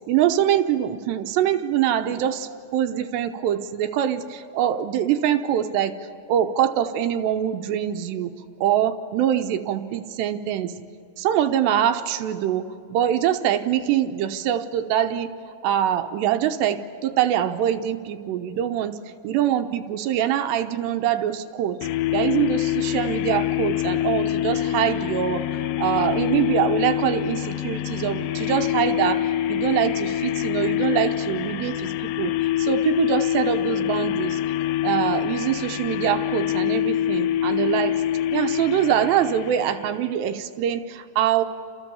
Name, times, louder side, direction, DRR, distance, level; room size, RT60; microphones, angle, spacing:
voice 1, 0.1-8.3 8.6-10.7 11.2-15.3 15.6-21.8 22.1-25.5 25.8-32.3 32.6-34.4 34.8-38.0 38.3-41.4, right 10 dB, 85° right, 8 dB, 3.1 m, -24 dB
sound 1, 21.8-40.1, left 12 dB, 80° left, 2.7 m, -25 dB
29.0 x 29.0 x 7.1 m, 2.4 s
omnidirectional pair, 5.0 m